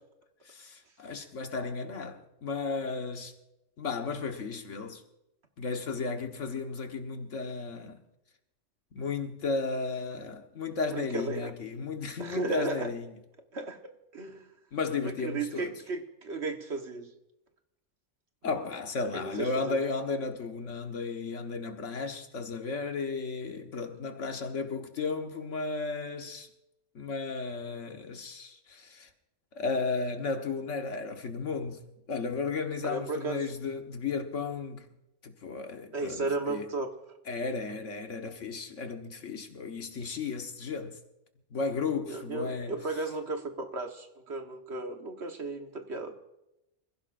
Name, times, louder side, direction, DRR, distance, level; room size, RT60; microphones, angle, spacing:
voice 1, 0.4-3.3 3.8-5.0 5.6-8.0 8.9-13.1 14.7-15.8 18.4-26.5 26.9-29.1 29.5-34.9 35.2-36.7 37.3-41.0 41.5-42.8, left 4 dB, 80° left, 1.7 m, -34 dB
voice 2, 10.9-11.5 12.2-12.9 13.5-13.8 14.1-14.5 15.0-17.1 19.1-19.8 32.8-33.4 35.9-36.9 42.0-46.1, right 3 dB, 60° right, 1.6 m, -34 dB
26.5 x 16.0 x 2.6 m
omnidirectional pair, 1.3 m